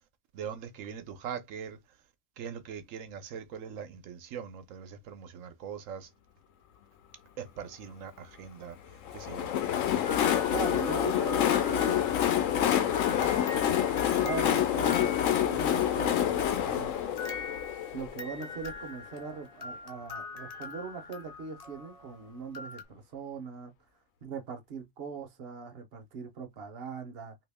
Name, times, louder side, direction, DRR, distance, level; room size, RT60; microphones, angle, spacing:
voice 1, 0.3-1.8 2.4-6.1 7.4-8.8 9.1-9.5, right 7 dB, 80° right, 1.0 m, -41 dB
Train, 9.1-18.7, left 10 dB, 75° left, 1.0 m, -27 dB
sound 1, 10.0-15.8 16.7-22.8, left 4 dB, 35° left, 0.7 m, -43 dB
voice 2, 10.5-13.1 14.2-17.1 17.9-23.7 24.2-27.4, right 5 dB, 55° right, 0.8 m, -41 dB
2.9 x 2.7 x 3.4 m
omnidirectional pair, 1.4 m